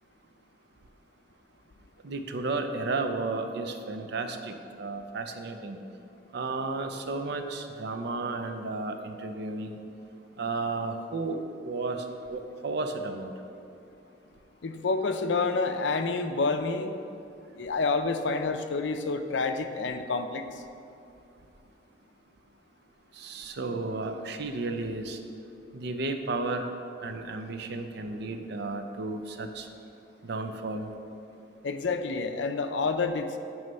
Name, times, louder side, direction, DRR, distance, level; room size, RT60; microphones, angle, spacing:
voice 1, 2.0-5.8 6.3-9.8 10.4-13.3 23.2-25.2 25.7-26.7 27.0-29.7 30.2-30.9, right 3 dB, 65° right, 6 dB, 0.5 m, -33 dB
voice 2, 14.6-16.9 17.6-20.4 31.6-33.4, left 3 dB, 75° left, 8 dB, 0.5 m, -28 dB
9.2 x 3.2 x 5.4 m, 2.6 s
head